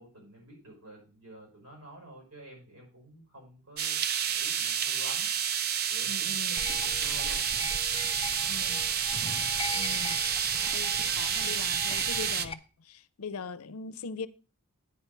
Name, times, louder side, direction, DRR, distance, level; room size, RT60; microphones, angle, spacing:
voice 1, 0.0-5.3 5.9-8.7 9.8-10.1, right 1 dB, 85° right, 5.3 m, -50 dB
sound 1, 3.8-12.5, right 8 dB, 45° right, 0.5 m, -29 dB
voice 2, 6.1-6.6 8.5-8.8 9.7-10.2 10.7-14.3, left 4 dB, 80° left, 0.5 m, -41 dB
sound 2, 6.6-12.5, left 5 dB, 25° left, 0.5 m, -40 dB
9.5 x 4.6 x 6.7 m
head